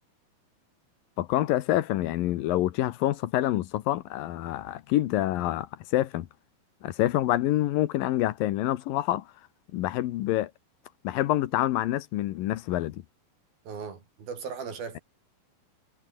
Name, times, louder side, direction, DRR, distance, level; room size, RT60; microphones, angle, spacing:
voice 1, 1.2-6.3 6.8-9.2 9.7-10.5 11.0-13.0, left 14 dB, 75° left, 2.6 m, -27 dB
voice 2, 13.7-15.0, right 6 dB, 75° right, 6.5 m, -37 dB
omnidirectional pair, 4.2 m